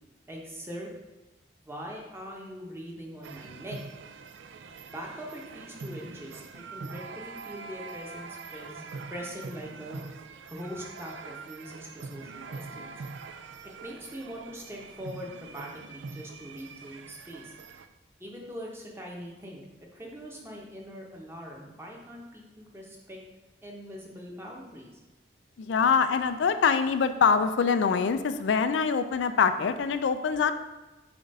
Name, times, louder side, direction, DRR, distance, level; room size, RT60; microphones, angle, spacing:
voice 1, 0.3-0.9 1.6-3.8 4.8-10.0 10.5-12.9 13.8-17.5 18.2-19.6 19.9-23.2 23.6-25.0, equal, 15° right, -2 dB, 0.9 m, -42 dB
sound 1, 3.2-17.9, right 4 dB, 85° right, 0.4 m, -43 dB
voice 2, 25.6-30.5, left 6 dB, 85° left, 10 dB, 0.4 m, -24 dB
7.0 x 2.5 x 5.3 m, 1.1 s
head